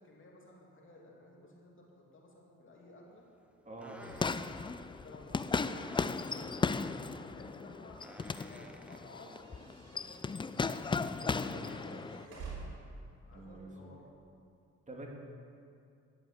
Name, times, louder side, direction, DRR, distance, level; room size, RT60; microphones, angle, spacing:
voice 1, 0.0-3.3 4.8-8.0 8.3-11.0 11.6-12.5 13.2-14.1, left 2 dB, 40° left, -3 dB, 3.1 m, -55 dB
sound 1, 3.1-9.5, equal, 5° right, 0.9 m, -57 dB
voice 2, 3.7-4.0 11.2-11.7 13.3-13.9 14.9-15.1, right 2 dB, 25° right, -1 dB, 2.5 m, -47 dB
sound 2, 4.0-12.3, left 4 dB, 15° left, 0.3 m, -36 dB
sound 3, 9.2-13.0, right 4 dB, 85° right, 3.5 m, -49 dB
11.0 x 7.8 x 8.0 m, 2.4 s
cardioid pair, 90°, 30 cm